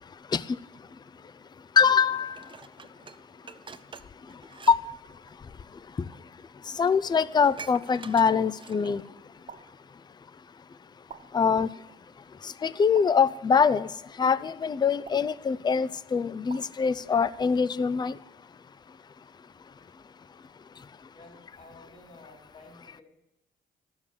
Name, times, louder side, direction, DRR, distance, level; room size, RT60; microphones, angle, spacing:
voice 1, 1.8-2.4 4.7-4.8 6.8-9.0 11.3-11.7 12.4-13.9 14.2-18.2, left 6 dB, 20° left, 17 dB, 0.4 m, -23 dB
Dishes pots and pans, 2.4-4.8 5.1-5.3 6.1-6.2 6.6-6.7 6.9-9.1 9.5-9.6, right 5 dB, 25° right, 0.6 m, -46 dB
sound 1, 7.4-7.7 9.5-9.9 11.1-11.5 12.9-13.4 15.1-15.5 16.5-16.8, right 6 dB, 40° right, 1.2 m, -47 dB
voice 2, 21.1-23.0, left 2 dB, 40° left, 0 dB, 4.3 m, -52 dB
12.0 x 7.2 x 8.3 m, 0.89 s
cardioid pair, 90°, 20 cm